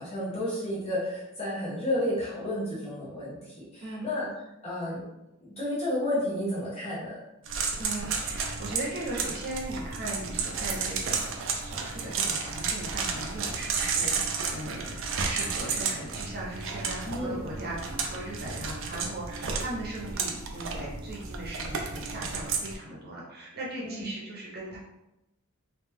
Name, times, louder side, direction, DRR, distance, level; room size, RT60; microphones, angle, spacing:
voice 1, 0.0-4.3 4.6-5.0 5.4-7.2 17.0-17.4 23.8-24.0, left 1 dB, 30° left, -8 dB, 1.4 m, -31 dB
voice 2, 3.8-4.1 7.8-24.8, right 2 dB, 45° right, -4 dB, 0.9 m, -38 dB
sound 1, 7.5-22.7, right 5 dB, 60° right, 0.5 m, -32 dB
3.2 x 2.8 x 3.5 m, 0.92 s
head